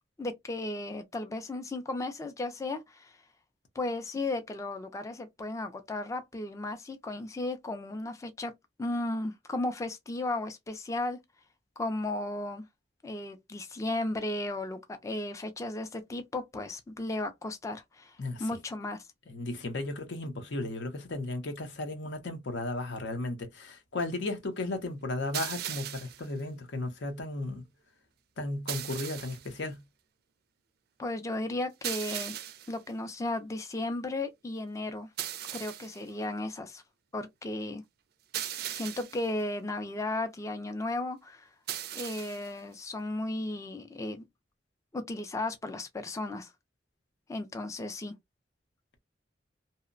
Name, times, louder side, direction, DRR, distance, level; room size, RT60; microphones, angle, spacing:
voice 1, 0.2-3.1 3.8-8.5 8.8-11.2 11.8-12.7 13.0-19.0 31.0-32.4 32.7-35.1 35.5-36.8 37.1-37.8 38.7-41.5 41.9-44.2 44.9-46.5 47.3-48.1, left 2 dB, 20° left, 0.3 m, -35 dB
voice 2, 18.2-18.5 19.3-27.6 28.4-29.8, left 2 dB, 85° left, 0.7 m, -35 dB
sound 1, 25.3-26.3 28.7-29.5 31.8-32.8 35.2-36.0 38.3-39.3 41.7-42.5, right 11 dB, 60° right, 0.4 m, -37 dB
2.7 x 2.0 x 2.4 m
head